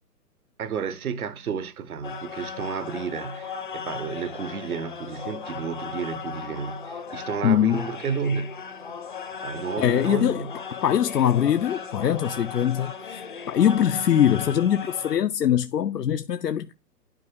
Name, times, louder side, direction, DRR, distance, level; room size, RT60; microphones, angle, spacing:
voice 1, 0.6-8.6 9.4-10.5, right 6 dB, 65° right, 0.9 m, -31 dB
sound 1, 2.0-15.2, left 6 dB, 35° left, 0.5 m, -37 dB
voice 2, 7.4-7.8 9.8-16.7, left 9 dB, 90° left, 0.6 m, -22 dB
11.5 x 4.3 x 3.1 m
figure-of-eight pair, 145°, 47 cm